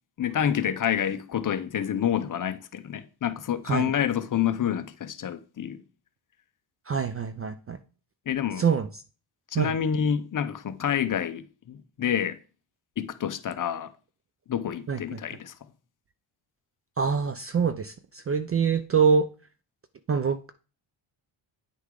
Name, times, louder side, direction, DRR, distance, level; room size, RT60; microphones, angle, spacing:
voice 1, 0.2-5.8 8.3-8.6 9.5-12.4 13.0-13.9 14.5-15.5, left 9 dB, 40° left, 0.7 m, -28 dB
voice 2, 6.9-7.8 8.6-8.9 9.5-9.7 14.9-15.2 17.0-19.3 20.1-20.5, right 6 dB, 30° right, 0.4 m, -25 dB
9.7 x 6.3 x 3.8 m
cardioid pair, 135°, 50 cm